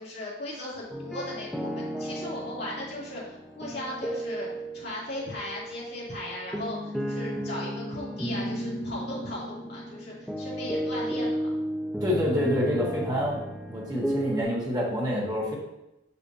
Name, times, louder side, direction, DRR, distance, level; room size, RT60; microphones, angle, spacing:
voice 1, 0.0-4.5 4.7-11.5, left 1 dB, 55° left, -8 dB, 2.5 m, -37 dB
sound 1, 0.9-14.4, equal, ahead, 0.4 m, -34 dB
voice 2, 12.0-13.4 13.7-15.6, equal, 20° right, -3 dB, 1.4 m, -27 dB
6.9 x 6.2 x 2.7 m, 0.90 s
head